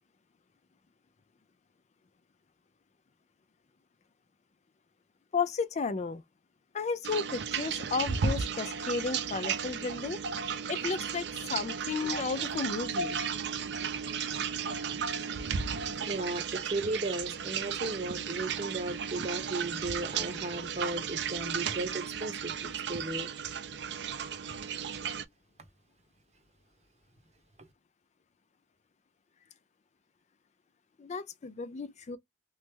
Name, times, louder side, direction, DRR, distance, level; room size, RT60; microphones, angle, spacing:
voice 1, 5.3-6.2 6.7-10.2 10.7-13.2 31.0-32.2, left 4 dB, 40° left, 0.4 m, -33 dB
sound 1, 7.0-25.2, right 6 dB, 70° right, 0.5 m, -34 dB
voice 2, 16.0-23.3, right 2 dB, 40° right, 0.8 m, -35 dB
3.2 x 2.0 x 3.3 m
head